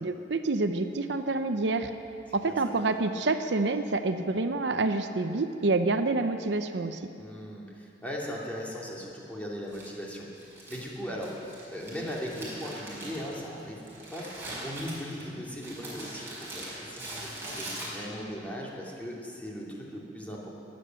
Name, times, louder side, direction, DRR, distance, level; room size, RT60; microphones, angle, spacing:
voice 1, 0.0-1.9 2.3-7.0, right 3 dB, 75° right, 8 dB, 0.7 m, -27 dB
voice 2, 7.2-10.3 10.7-11.3 11.7-14.3 14.6-20.5, equal, 10° left, -4 dB, 2.5 m, -38 dB
Crumpling crinkling, 9.7-18.3, right 1 dB, 15° right, 4.7 m, -42 dB
21.5 x 8.5 x 7.6 m, 2.7 s
head